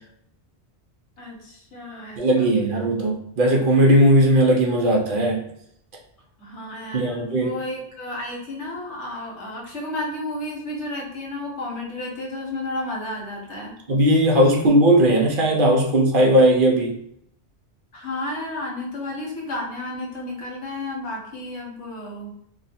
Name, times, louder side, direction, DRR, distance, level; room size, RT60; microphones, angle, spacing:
voice 1, 1.2-2.5 6.4-13.8 17.9-22.3, left 1 dB, 90° left, -1 dB, 1.2 m, -32 dB
voice 2, 2.2-5.4 6.9-7.6 13.9-17.0, right 1 dB, 55° right, 0 dB, 0.8 m, -18 dB
2.6 x 2.4 x 4.1 m, 0.72 s
omnidirectional pair, 1.1 m